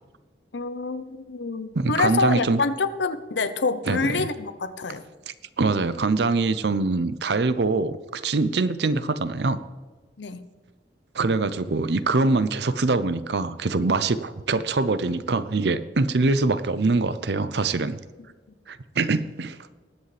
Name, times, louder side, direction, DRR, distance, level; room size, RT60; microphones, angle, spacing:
voice 1, 0.5-5.0 10.2-10.5, left 3 dB, 85° left, 12 dB, 0.8 m, -26 dB
voice 2, 1.7-2.6 3.9-4.3 5.3-9.6 11.1-18.0 18.7-19.6, right 3 dB, 70° right, 14 dB, 0.6 m, -24 dB
20.0 x 8.2 x 3.4 m, 1.3 s
head